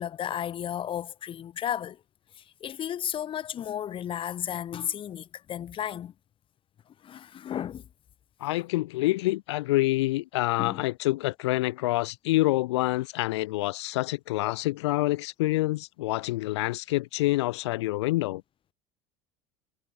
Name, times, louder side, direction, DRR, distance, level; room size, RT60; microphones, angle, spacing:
voice 1, 0.0-2.0 2.4-6.1 7.0-7.8 10.6-10.8, left 10 dB, 40° left, 1.5 m, -33 dB
voice 2, 8.4-18.4, left 18 dB, 85° left, 0.7 m, -27 dB
supercardioid pair, 100°, 14 cm